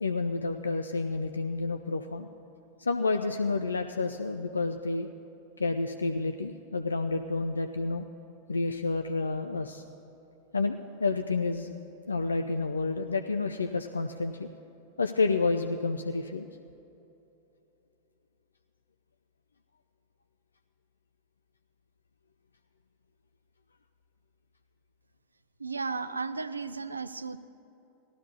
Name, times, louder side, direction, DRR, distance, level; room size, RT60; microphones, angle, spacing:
voice 1, 0.0-2.3 2.8-5.1 5.6-8.1 8.5-9.8 10.5-11.7 12.1-14.5 15.0-16.5, left 3 dB, 75° left, 7 dB, 0.4 m, -29 dB
voice 2, 25.6-27.4, right 4 dB, 80° right, 13 dB, 0.4 m, -34 dB
18.0 x 13.0 x 2.7 m, 2.9 s
figure-of-eight pair, 90°, 0 cm